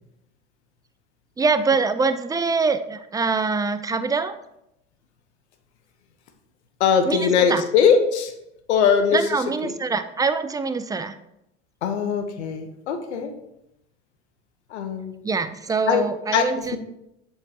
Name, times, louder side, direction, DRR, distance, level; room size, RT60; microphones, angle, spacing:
voice 1, 1.4-4.3 7.1-7.6 9.1-11.2 15.2-16.8, right 4 dB, 10° right, 11 dB, 0.4 m, -24 dB
voice 2, 6.8-8.3 8.7-9.2 9.6-9.7 11.8-13.3 14.7-15.1 15.9-16.1 16.3-16.5, left 7 dB, 90° left, 7 dB, 0.9 m, -20 dB
7.7 x 4.6 x 2.8 m, 0.82 s
hypercardioid pair, 85°, 33 cm